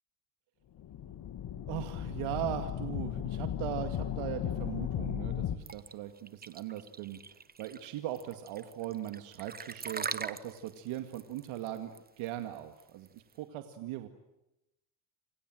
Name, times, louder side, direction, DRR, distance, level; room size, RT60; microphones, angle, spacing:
sound 1, 0.8-5.6, left 11 dB, 45° left, 2.1 m, -36 dB
voice 1, 1.7-14.1, right 12 dB, 70° right, 7 dB, 2.3 m, -39 dB
sound 2, 5.7-13.3, right 5 dB, 20° right, 1.2 m, -42 dB
27.5 x 27.0 x 7.8 m, 0.92 s
cardioid pair, 115°, 50 cm